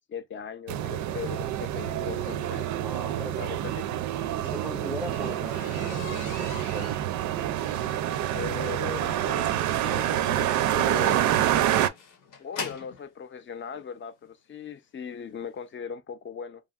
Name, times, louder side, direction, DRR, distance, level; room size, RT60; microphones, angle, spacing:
voice 1, 0.1-2.7 3.4-3.7 8.3-11.2 12.4-16.6, left 6 dB, 40° left, 0.6 m, -39 dB
sound 1, 0.7-11.9, right 12 dB, 75° right, 0.4 m, -27 dB
voice 2, 2.8-4.1 4.4-7.0, left 1 dB, ahead, 0.7 m, -40 dB
sound 2, 4.3-13.1 14.0-14.1 14.6-14.8 15.1-15.2 15.5-15.6, left 5 dB, 90° left, 1.1 m, -42 dB
2.9 x 2.4 x 2.3 m
cardioid pair, 90°, 30 cm